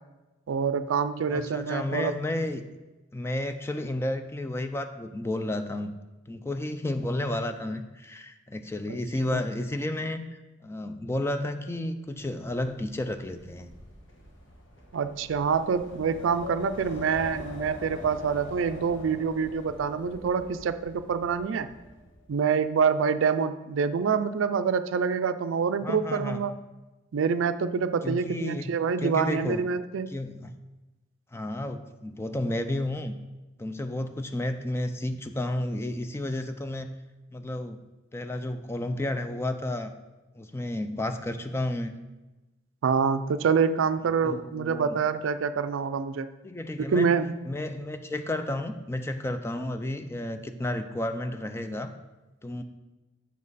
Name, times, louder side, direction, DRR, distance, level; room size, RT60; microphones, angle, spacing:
voice 1, 0.5-2.2 9.3-9.4 14.9-21.7 22.3-26.5 27.1-30.1 42.8-46.3 46.9-47.3, right 6 dB, 75° right, 11 dB, 0.4 m, -26 dB
voice 2, 1.3-2.6 3.1-5.9 6.3-13.7 16.8-17.0 25.8-26.5 28.0-28.7 29.0-29.7 30.1-30.5 31.3-33.1 33.6-36.9 37.3-37.8 38.1-39.9 40.3-42.0 44.2-45.0 46.4-47.1 47.5-51.9 52.4-52.6, left 1 dB, 15° left, 8 dB, 0.4 m, -32 dB
Wind, 12.2-22.3, left 2 dB, 70° left, 1.4 m, -43 dB
7.4 x 5.7 x 4.1 m, 1.1 s
head